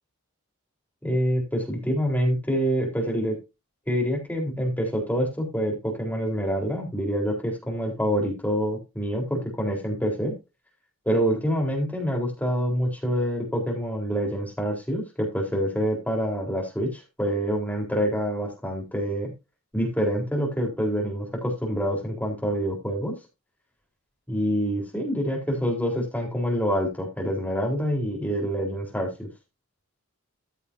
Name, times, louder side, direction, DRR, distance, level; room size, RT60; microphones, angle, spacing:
voice 1, 1.0-3.4 3.9-10.3 11.1-19.3 19.7-23.1 24.3-29.3, equal, 10° left, 1 dB, 4.1 m, -26 dB
14.5 x 7.0 x 2.7 m, 0.25 s
head